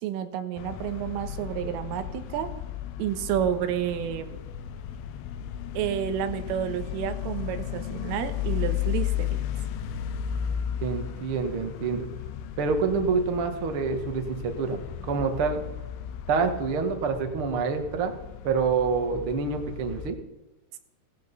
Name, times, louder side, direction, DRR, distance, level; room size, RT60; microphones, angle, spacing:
voice 1, 0.0-2.5 3.0-4.4 5.7-9.4, right 10 dB, 85° right, 8 dB, 3.8 m, -30 dB
sound 1, 0.6-20.1, left 10 dB, 85° left, 3.5 m, -34 dB
voice 2, 10.8-12.1 12.6-15.6 16.3-18.1 18.4-20.2, right 5 dB, 65° right, 5 dB, 1.3 m, -27 dB
17.0 x 14.5 x 5.6 m, 1.0 s
omnidirectional pair, 5.7 m